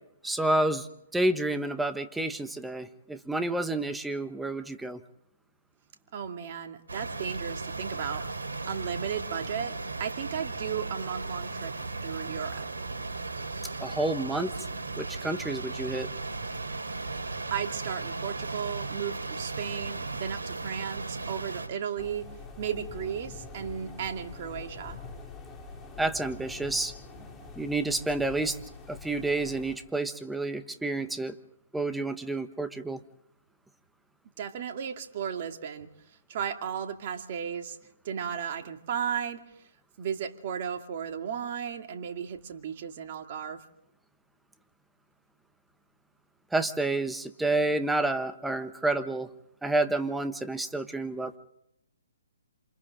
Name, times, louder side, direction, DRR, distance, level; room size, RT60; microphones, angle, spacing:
voice 1, 0.2-0.9 1.1-5.0 13.8-14.5 15.0-16.1 26.0-26.9 27.6-28.6 28.9-31.3 31.7-33.0 46.5-49.3 49.6-51.4, right 2 dB, 5° right, 10 dB, 1.3 m, -29 dB
voice 2, 6.1-8.3 8.7-11.7 12.0-12.7 17.5-22.3 22.6-25.0 34.4-35.9 36.3-37.8 38.0-39.4 40.0-43.6, right 8 dB, 45° right, 5 dB, 2.5 m, -35 dB
sound 1, 6.9-21.7, right 3 dB, 75° right, 4.0 m, -36 dB
sound 2, 22.0-29.8, left 4 dB, 10° left, 3.6 m, -45 dB
28.0 x 28.0 x 3.8 m, 0.79 s
figure-of-eight pair, 135°, 0 cm